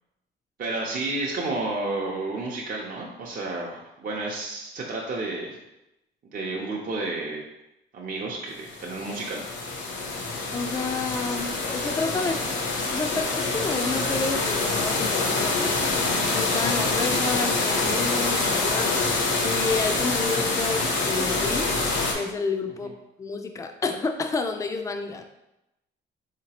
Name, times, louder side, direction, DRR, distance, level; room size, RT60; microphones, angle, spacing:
voice 1, 0.6-5.6 6.3-7.4 7.9-9.4 12.1-12.3, right 2 dB, 45° right, -3 dB, 0.6 m, -31 dB
sound 1, 8.6-22.1, left 3 dB, 70° left, 0.8 m, -26 dB
voice 2, 10.5-12.4 12.7-15.8 16.3-19.1 19.4-21.7 22.1-22.9 23.2-25.2, left 4 dB, 15° left, 6 dB, 0.3 m, -30 dB
3.8 x 2.9 x 2.8 m, 0.91 s
cardioid pair, 90°, 20 cm